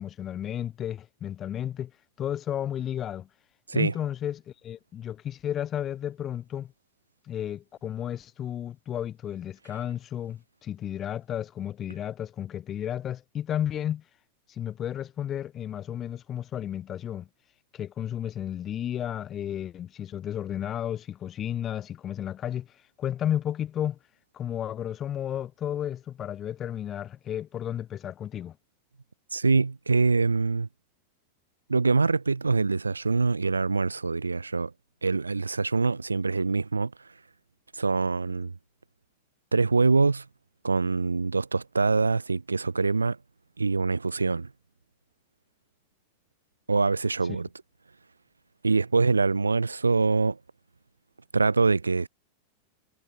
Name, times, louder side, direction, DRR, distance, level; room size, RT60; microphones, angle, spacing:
voice 1, 0.0-1.9 2.2-3.3 3.7-6.7 7.3-14.0 14.5-17.3 17.7-22.7 23.0-24.0 24.3-28.6 47.3-47.4, left 10 dB, 30° left, 6.4 m, -33 dB
voice 2, 29.3-30.7 31.7-34.7 35.0-36.9 37.7-38.5 39.5-40.2 40.6-43.2 43.6-44.5 46.7-47.5 48.6-50.4 51.3-52.1, right 4 dB, 80° right, 0.6 m, -24 dB
figure-of-eight pair, 90°, 0 cm